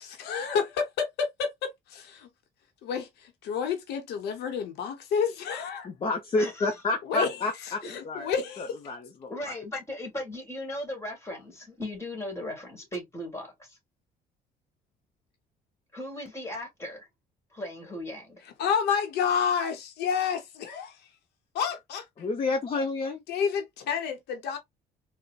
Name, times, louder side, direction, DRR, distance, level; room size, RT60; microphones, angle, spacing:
voice 1, 0.0-2.3 2.8-5.9 7.1-7.4 7.8-8.8 18.6-21.0 21.5-22.1 23.3-24.6, left 6 dB, 75° left, 0.8 m, -29 dB
voice 2, 5.8-8.3 8.6-9.5 22.2-23.2, left 3 dB, 35° left, 0.6 m, -30 dB
voice 3, 6.4-6.7 7.5-8.0 9.3-13.8 15.9-17.1 17.5-18.4, left 1 dB, 15° left, 1.6 m, -37 dB
4.0 x 2.1 x 2.3 m
cardioid pair, 110°, 17 cm